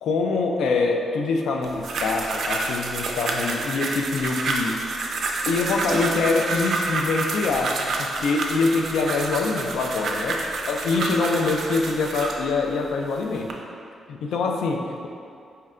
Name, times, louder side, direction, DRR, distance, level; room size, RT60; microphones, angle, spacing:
voice 1, 0.0-4.8 5.5-13.6 14.1-15.1, left 3 dB, 85° left, 2 dB, 0.3 m, -25 dB
sound 1, 1.6-12.4 13.1-13.5, right 3 dB, 55° right, 0.3 m, -28 dB
4.3 x 2.2 x 3.6 m, 2.4 s
wide cardioid pair, 175°, 0 cm